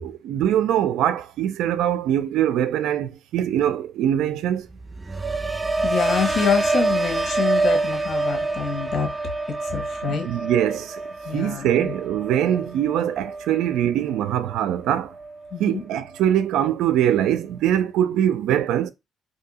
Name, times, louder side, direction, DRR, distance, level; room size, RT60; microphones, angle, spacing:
voice 1, 0.0-4.7 10.1-11.0 11.3-15.1 15.6-18.9, right 10 dB, 85° right, 0.4 m, -22 dB
sound 1, 4.7-14.8 15.1-15.6, right 3 dB, 20° right, 0.4 m, -27 dB
voice 2, 5.8-9.1 9.5-10.3 11.2-11.9 15.5-15.8, left 6 dB, 65° left, 1.1 m, -26 dB
2.7 x 2.7 x 4.0 m
cardioid pair, 90°, 0 cm